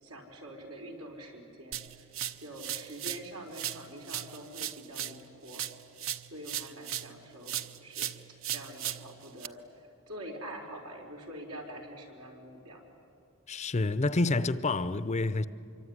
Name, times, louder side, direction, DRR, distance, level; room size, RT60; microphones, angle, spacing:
voice 1, 0.0-2.1 2.4-5.7 6.2-8.1 8.5-12.8, right 1 dB, 85° right, 4.6 m, -45 dB
sound 1, 1.7-3.3 3.5-7.2 7.5-9.5, right 11 dB, 60° right, 0.8 m, -37 dB
voice 2, 13.5-15.5, left 2 dB, 30° left, 0.6 m, -28 dB
25.5 x 24.0 x 9.7 m
head